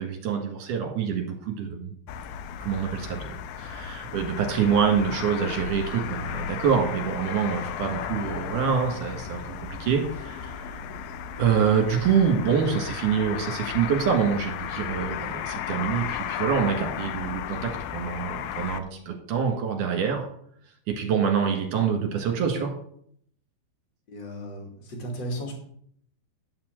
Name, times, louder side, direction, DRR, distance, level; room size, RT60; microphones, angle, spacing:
voice 1, 0.0-1.9 2.6-10.7 11.4-20.3 20.9-22.7, right 7 dB, 60° right, 2 dB, 2.8 m, -26 dB
sound 1, 2.1-18.8, left 9 dB, 90° left, 2.1 m, -34 dB
voice 2, 24.1-25.5, equal, 35° left, 1 dB, 2.0 m, -35 dB
11.5 x 4.4 x 7.6 m, 0.66 s
omnidirectional pair, 4.8 m